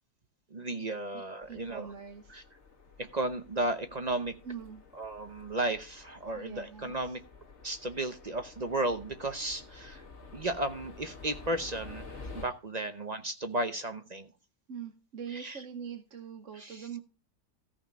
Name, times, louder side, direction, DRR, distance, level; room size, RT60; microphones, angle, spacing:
voice 1, 0.5-1.9 2.3-2.4 3.0-4.3 4.9-7.2 7.6-10.0 10.3-14.3 15.3-15.6 16.5-17.0, right 1 dB, 35° right, 8 dB, 0.7 m, -34 dB
voice 2, 1.1-2.4 4.4-4.8 6.4-7.2 14.7-17.0, right 7 dB, 55° right, 6 dB, 1.3 m, -43 dB
sound 1, 1.4-12.5, left 4 dB, 45° left, 2.3 m, -50 dB
14.0 x 5.8 x 5.3 m, 0.32 s
omnidirectional pair, 1.6 m